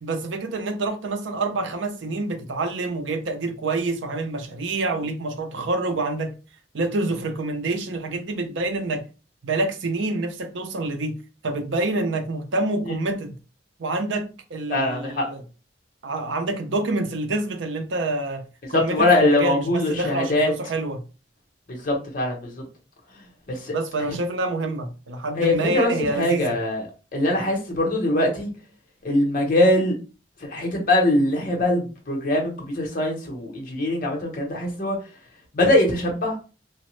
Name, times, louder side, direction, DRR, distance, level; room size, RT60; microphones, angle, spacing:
voice 1, 0.0-6.3 6.7-9.0 9.4-11.2 11.4-13.3 13.8-15.4 16.0-18.4 18.7-21.0 23.7-26.6, right 2 dB, 80° right, 0.6 m, -27 dB
voice 2, 14.7-15.2 18.6-20.5 21.7-22.6 23.1-23.7 25.3-28.5 29.0-29.9 30.4-35.0 35.5-36.4, left 1 dB, 45° left, 0.8 m, -22 dB
3.0 x 2.1 x 3.0 m
head